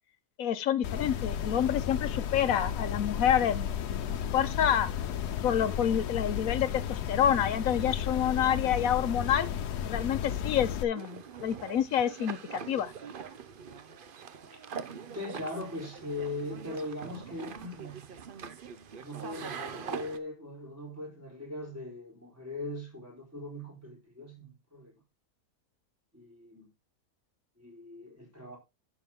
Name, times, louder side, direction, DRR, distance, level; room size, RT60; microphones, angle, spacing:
voice 1, 0.4-4.9 5.4-9.5 9.8-12.9, left 9 dB, 65° left, 1.2 m, -28 dB
sound 1, 0.8-10.8, left 9 dB, 90° left, 1.3 m, -33 dB
sound 2, 10.9-20.2, right 6 dB, 50° right, 0.7 m, -43 dB
voice 2, 15.1-18.1 19.0-24.9 26.1-26.7 27.6-28.6, left 2 dB, 10° right, 4.4 m, -40 dB
11.0 x 7.3 x 3.6 m
omnidirectional pair, 1.6 m